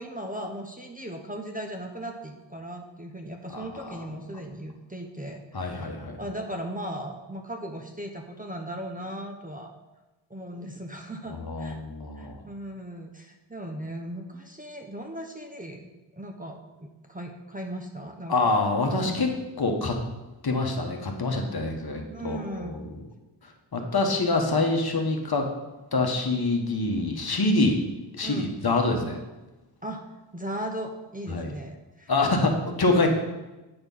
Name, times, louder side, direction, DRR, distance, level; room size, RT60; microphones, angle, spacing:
voice 1, 0.0-9.7 10.3-11.8 12.2-18.5 22.1-22.9 28.2-28.6 29.8-30.1 30.3-32.5, right 1 dB, 15° right, 3 dB, 0.7 m, -37 dB
voice 2, 3.5-4.0 5.5-6.2 11.3-12.4 18.3-19.3 19.6-20.0 20.4-22.8 23.7-25.5 25.9-27.8 28.1-29.2 31.3-31.5 32.1-33.1, left 3 dB, 50° left, 3 dB, 1.1 m, -25 dB
8.7 x 4.4 x 5.4 m, 1.1 s
wide cardioid pair, 90°, 47 cm